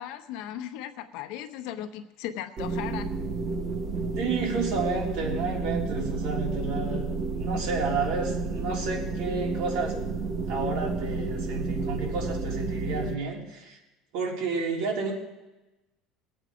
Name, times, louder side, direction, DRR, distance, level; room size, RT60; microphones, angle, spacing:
voice 1, 0.0-3.1, left 11 dB, 65° left, 7 dB, 0.9 m, -37 dB
sound 1, 2.6-13.1, right 3 dB, 30° right, 1.0 m, -31 dB
voice 2, 4.2-10.0 10.5-13.8 14.1-15.1, right 4 dB, 70° right, -1 dB, 3.5 m, -31 dB
20.0 x 8.2 x 5.1 m, 1.0 s
cardioid pair, 165°, 0 cm